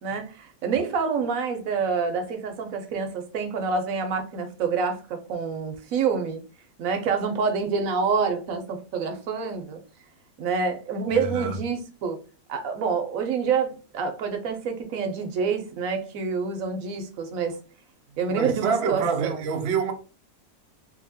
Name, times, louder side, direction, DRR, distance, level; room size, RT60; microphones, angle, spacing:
voice 1, 0.0-6.4 6.8-9.8 10.4-12.2 12.5-17.6 18.2-19.4, right 5 dB, 70° right, 0.8 m, -27 dB
voice 2, 11.1-11.5 18.3-19.9, right 6 dB, 85° right, 0.5 m, -26 dB
2.8 x 2.6 x 2.7 m
omnidirectional pair, 1.9 m